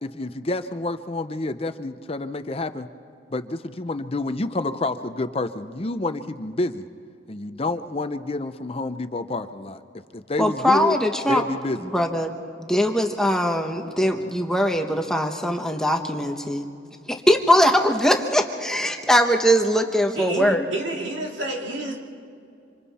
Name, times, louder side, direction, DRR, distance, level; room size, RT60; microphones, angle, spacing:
voice 1, 0.0-2.9 3.3-6.9 7.3-9.8 10.1-11.0 11.3-11.9, left 2 dB, 30° left, 10 dB, 0.6 m, -28 dB
voice 2, 10.4-11.4 11.9-12.3 12.6-16.7 17.1-20.6, equal, 5° left, 3 dB, 1.0 m, -21 dB
voice 3, 20.1-22.0, right 1 dB, 75° right, 0 dB, 2.9 m, -29 dB
26.5 x 26.5 x 4.2 m, 2.5 s
head